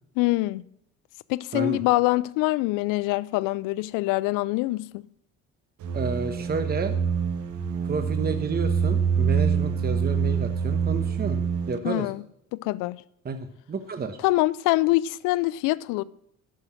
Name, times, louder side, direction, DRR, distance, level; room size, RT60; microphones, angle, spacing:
voice 1, 0.2-0.6 1.3-5.1 11.8-12.2 12.5-13.0 14.2-16.0, left 19 dB, 85° left, 0.6 m, -24 dB
sound 1, 5.8-11.8, right 6 dB, 70° right, 1.6 m, -25 dB
voice 2, 5.9-6.9 7.9-11.4 11.7-12.1 13.2-13.4 13.7-14.2, right 4 dB, 30° right, 1.2 m, -30 dB
12.0 x 6.6 x 7.6 m
cardioid pair, 90°, 31 cm